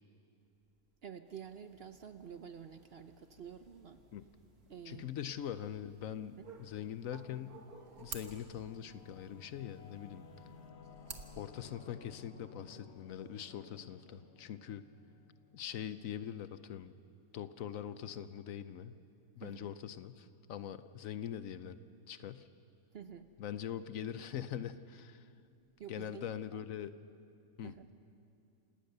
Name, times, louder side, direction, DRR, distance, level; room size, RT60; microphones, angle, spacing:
voice 1, 1.0-4.0 4.7-5.1 6.4-6.5 19.4-19.7 22.9-23.3 25.8-26.6 27.6-27.9, right 8 dB, 55° right, 10 dB, 0.8 m, -49 dB
sound 1, 1.3-10.7, right 3 dB, 90° right, 2.6 m, -61 dB
voice 2, 4.9-7.6 8.0-10.2 11.3-14.8 15.5-16.9 17.3-18.9 19.4-21.8 22.1-22.5 23.4-25.3 25.9-27.0 27.6-27.7, left 9 dB, 70° left, 13 dB, 1.0 m, -43 dB
sound 2, 7.3-12.3, right 6 dB, 75° right, 1.7 m, -52 dB
Singing / Musical instrument, 7.9-17.0, left 6 dB, 50° left, 1.2 m, -58 dB
27.5 x 18.0 x 6.7 m, 2.7 s
omnidirectional pair, 1.5 m